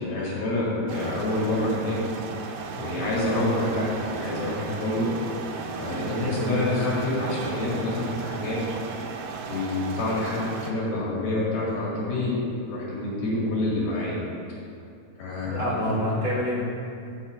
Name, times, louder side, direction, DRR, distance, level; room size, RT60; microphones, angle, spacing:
voice 1, 0.0-2.0 2.7-5.1 5.8-8.6 9.5-12.4 12.7-14.2 15.2-16.0, left 2 dB, 80° left, -7 dB, 3.6 m, -27 dB
sound 1, 0.9-10.7, right 5 dB, 85° right, 2.6 m, -36 dB
voice 2, 6.1-6.6 15.5-16.6, equal, 55° left, -11 dB, 0.7 m, -27 dB
11.5 x 8.5 x 2.4 m, 2.5 s
omnidirectional pair, 4.3 m